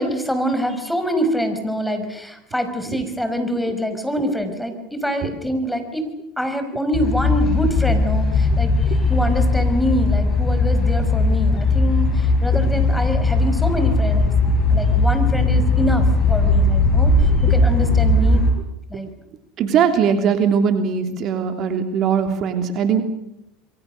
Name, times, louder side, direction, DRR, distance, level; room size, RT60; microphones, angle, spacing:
voice 1, 0.0-6.1 6.4-18.5 18.9-19.1 22.9-23.0, equal, ahead, 7 dB, 5.5 m, -25 dB
sound 1, 6.9-18.5, left 2 dB, 40° left, 7.7 m, -18 dB
voice 2, 19.6-23.0, right 7 dB, 50° right, 7 dB, 3.1 m, -20 dB
27.5 x 23.0 x 6.7 m, 0.82 s
hypercardioid pair, 85°, 0 cm